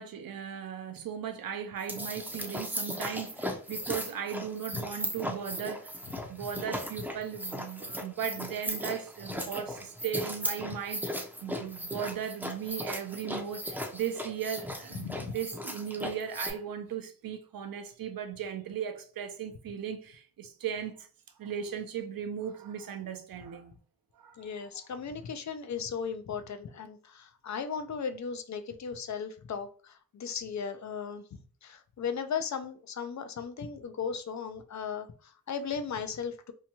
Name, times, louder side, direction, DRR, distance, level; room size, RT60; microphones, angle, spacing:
voice 1, 0.0-5.9 6.3-21.1 21.4-23.8 24.2-24.5, right 8 dB, 65° right, 0.6 m, -37 dB
sound 1, 1.8-16.5, equal, 5° right, 0.5 m, -37 dB
voice 2, 15.0-15.3 24.4-31.2 31.6-36.5, left 6 dB, 50° left, 0.4 m, -36 dB
2.8 x 2.2 x 2.8 m
cardioid pair, 80°, 37 cm